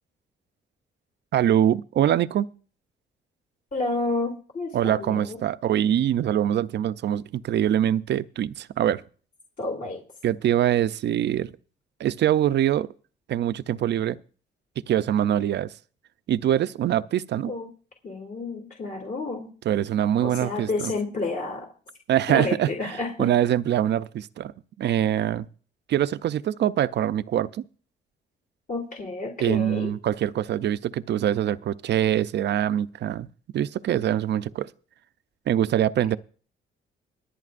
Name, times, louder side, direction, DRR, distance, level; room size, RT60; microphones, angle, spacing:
voice 1, 1.3-2.5 4.7-9.0 10.2-11.5 12.0-12.9 13.3-14.2 14.9-15.7 16.3-17.5 19.7-20.9 22.1-24.5 24.8-25.5 25.9-27.6 29.4-33.3 33.5-34.7 35.5-36.2, right 11 dB, 60° right, 0.5 m, -24 dB
voice 2, 3.7-5.4 9.6-10.0 17.5-17.7 18.0-19.5 20.2-21.7 22.3-23.3 28.7-29.9, left 3 dB, 45° left, 2.9 m, -30 dB
25.0 x 8.9 x 2.5 m
cardioid pair, 90°, 20 cm